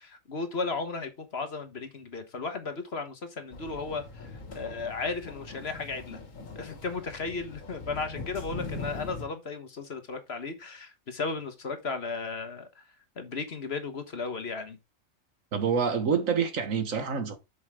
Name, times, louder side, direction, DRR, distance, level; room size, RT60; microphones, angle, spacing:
voice 1, 0.0-6.2 6.5-12.7 13.2-14.8, left 4 dB, 50° left, 1.6 m, -35 dB
sound 1, 3.5-9.2, left 3 dB, 75° left, 2.1 m, -41 dB
voice 2, 15.5-17.4, right 6 dB, 80° right, 1.8 m, -27 dB
8.0 x 6.3 x 3.6 m
omnidirectional pair, 1.4 m